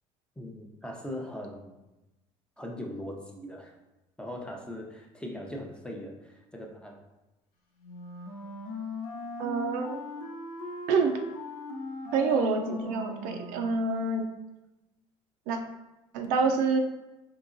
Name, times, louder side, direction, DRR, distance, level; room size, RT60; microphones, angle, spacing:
voice 1, 0.4-1.8 2.6-3.7 4.2-7.0, left 1 dB, 5° left, 0 dB, 0.7 m, -40 dB
Wind instrument woodwind instrument, 7.8-13.9, left 3 dB, 70° left, 0.8 m, -39 dB
voice 2, 9.4-10.0 10.9-11.2 12.1-14.3 15.5-15.6 16.1-16.8, right 4 dB, 80° right, 4 dB, 0.4 m, -27 dB
3.8 x 2.8 x 2.5 m, 1.0 s
supercardioid pair, 80°, 14 cm